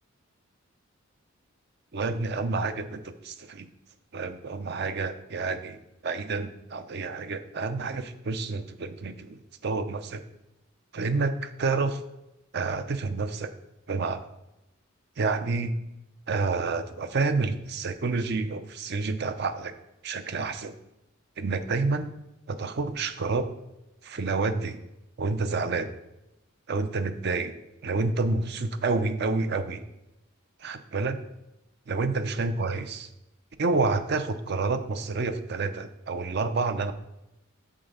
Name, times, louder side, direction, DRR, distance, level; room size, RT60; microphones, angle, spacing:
voice 1, 1.9-3.7 4.1-10.2 10.9-12.0 12.5-13.5 13.9-14.3 15.2-15.7 16.3-19.7 20.0-20.7 21.4-22.1 22.5-23.5 24.0-24.8 25.2-25.9 26.7-27.5 27.8-29.8 30.6-31.2 31.9-33.1 33.6-36.9, right 3 dB, 55° right, 10 dB, 0.5 m, -29 dB
7.5 x 4.0 x 6.7 m, 0.90 s
head